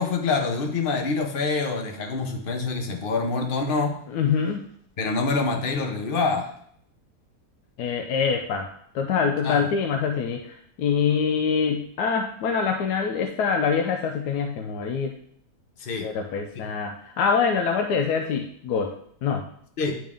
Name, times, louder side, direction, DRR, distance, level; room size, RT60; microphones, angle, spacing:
voice 1, 0.0-4.0 5.0-6.5 9.4-9.7 15.8-16.1 19.8-19.9, left 4 dB, 40° left, 4 dB, 0.9 m, -26 dB
voice 2, 4.1-4.7 7.8-8.7 8.9-15.1 16.0-18.9 19.2-19.4, left 6 dB, 80° left, 4 dB, 1.2 m, -25 dB
10.0 x 3.6 x 3.6 m, 0.64 s
omnidirectional pair, 1.8 m